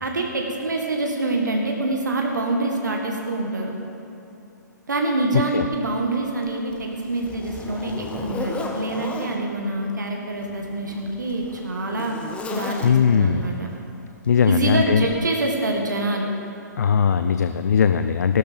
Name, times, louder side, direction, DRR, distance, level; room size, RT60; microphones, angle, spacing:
voice 1, 0.0-3.7 4.9-12.2 12.5-13.7 14.4-16.3, right 2 dB, 75° right, 1 dB, 1.8 m, -25 dB
Zipper (clothing), 5.7-5.8 6.4-9.4 10.3-13.3 14.3-14.5 15.1-15.2, left 3 dB, 10° left, 1.1 m, -34 dB
voice 2, 12.8-13.5 14.3-15.1 16.8-18.4, left 7 dB, 60° left, 10 dB, 0.5 m, -19 dB
16.0 x 12.0 x 5.3 m, 2.9 s
figure-of-eight pair, 120°, 10 cm